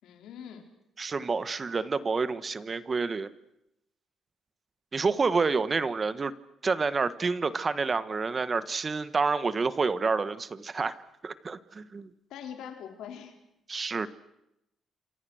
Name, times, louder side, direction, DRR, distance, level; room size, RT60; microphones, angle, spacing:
voice 1, 0.0-0.6 12.3-13.3, left 8 dB, 85° left, 4 dB, 4.1 m, -42 dB
voice 2, 1.0-3.3 4.9-6.3 6.6-11.0 11.2-12.1 13.7-14.1, right 4 dB, 35° right, 14 dB, 1.3 m, -28 dB
28.5 x 26.5 x 6.4 m, 0.84 s
cardioid pair, 90°, 0 cm